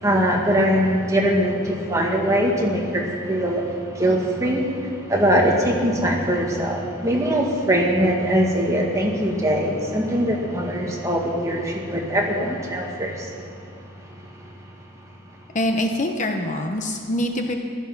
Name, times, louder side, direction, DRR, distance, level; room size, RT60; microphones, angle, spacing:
voice 1, 0.0-3.7 3.9-13.3, equal, 15° right, -1 dB, 1.8 m, -22 dB
voice 2, 15.5-17.5, left 1 dB, 35° left, 4 dB, 0.9 m, -24 dB
15.0 x 12.0 x 5.9 m, 2.6 s
head